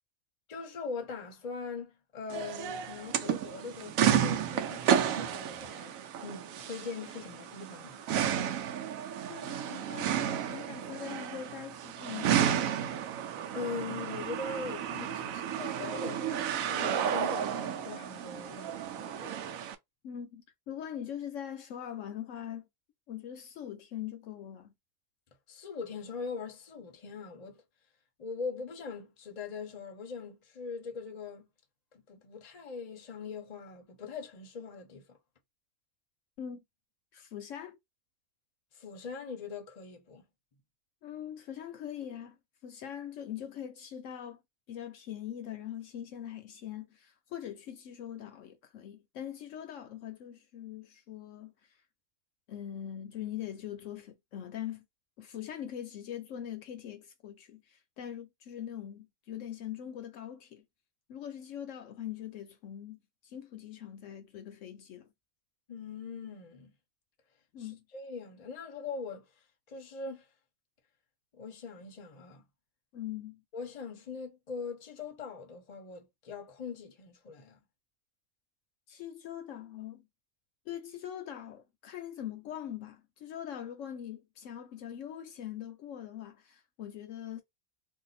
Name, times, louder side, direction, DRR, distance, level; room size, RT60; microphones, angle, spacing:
voice 1, 0.5-8.1 13.5-19.4 25.5-27.6 28.2-31.5 31.9-35.2 38.7-40.2 65.7-66.7 67.6-69.3 69.7-70.3 71.3-72.5 73.5-77.6, left 4 dB, 35° left, 0.7 m, -42 dB
sound 1, 2.3-19.7, right 9 dB, 75° right, 1.0 m, -32 dB
voice 2, 9.3-12.5 20.0-22.7 23.1-24.7 36.4-36.6 37.1-37.8 41.0-44.4 44.7-51.8 52.5-54.8 55.2-60.6 61.1-65.1 67.5-67.8 72.9-73.4 78.9-80.1 80.7-87.4, left 10 dB, 70° left, 0.9 m, -42 dB
2.7 x 2.3 x 4.1 m
omnidirectional pair, 1.4 m